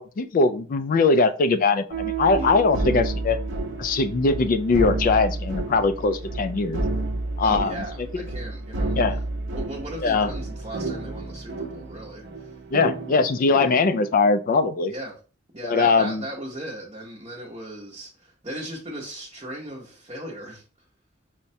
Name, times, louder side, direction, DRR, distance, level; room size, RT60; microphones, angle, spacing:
voice 1, 0.0-3.4 3.8-6.8 7.4-7.7 8.1-8.2 8.9-9.2 10.0-10.3 12.7-14.9 15.6-16.2, left 4 dB, 45° left, 11 dB, 0.3 m, -21 dB
sound 1, 1.9-14.1, right 2 dB, 65° right, 0.7 m, -30 dB
voice 2, 2.3-2.7 7.4-9.0 9.5-12.5 14.9-15.2 15.5-20.6, right 1 dB, 30° right, -4 dB, 0.7 m, -37 dB
5.7 x 2.1 x 2.6 m, 0.38 s
head